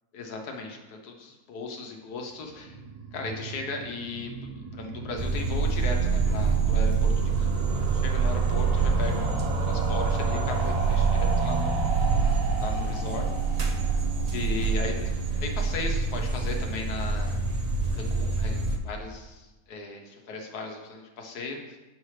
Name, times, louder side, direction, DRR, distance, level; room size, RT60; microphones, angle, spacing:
voice 1, 0.1-2.8 3.1-11.9 12.5-13.3 14.3-17.4 17.9-21.8, left 3 dB, 90° left, 2 dB, 1.5 m, -37 dB
sound 1, 2.4-15.5 15.8-15.9 16.1-16.2 16.4-16.5, right 4 dB, 60° right, 1.1 m, -33 dB
sound 2, 5.2-18.8, right 4 dB, 80° right, 0.3 m, -26 dB
7.4 x 5.8 x 3.2 m, 1.1 s
omnidirectional pair, 1.6 m